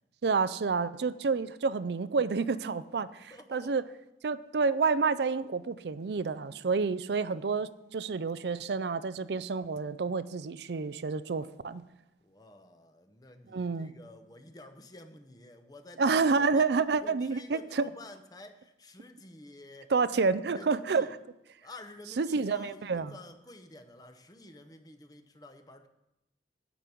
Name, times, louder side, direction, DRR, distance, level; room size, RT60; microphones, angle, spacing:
voice 1, 0.2-3.8 4.2-11.8 13.5-13.9 16.0-17.6 19.9-21.1 22.2-23.1, right 4 dB, 75° right, 15 dB, 0.5 m, -29 dB
voice 2, 3.3-3.7 12.2-16.2 16.5-16.7 17.0-19.9 20.5-21.1 21.6-25.9, left 2 dB, 20° left, 7 dB, 0.8 m, -50 dB
9.9 x 6.1 x 8.3 m, 0.90 s
head